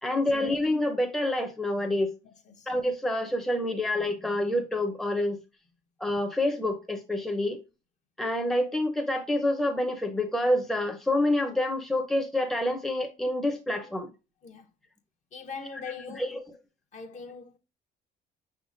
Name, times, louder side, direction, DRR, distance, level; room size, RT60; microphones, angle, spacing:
voice 1, 0.0-2.1 2.7-5.4 6.0-7.6 8.2-14.1 16.2-16.4, left 1 dB, ahead, 0.6 m, -27 dB
voice 2, 15.3-16.3 16.9-17.6, left 5 dB, 45° left, 0.8 m, -41 dB
5.7 x 3.6 x 2.6 m
cardioid pair, 110°, 17 cm